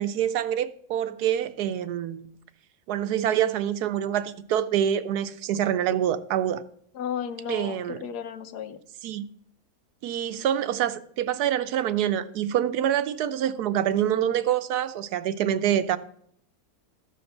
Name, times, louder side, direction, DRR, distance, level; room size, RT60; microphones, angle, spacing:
voice 1, 0.0-2.3 2.9-6.6 7.5-8.0 9.0-9.2 10.0-16.0, right 10 dB, 80° right, 1.2 m, -26 dB
voice 2, 6.9-8.8, left 8 dB, 90° left, 1.4 m, -34 dB
13.5 x 5.2 x 6.6 m
omnidirectional pair, 1.7 m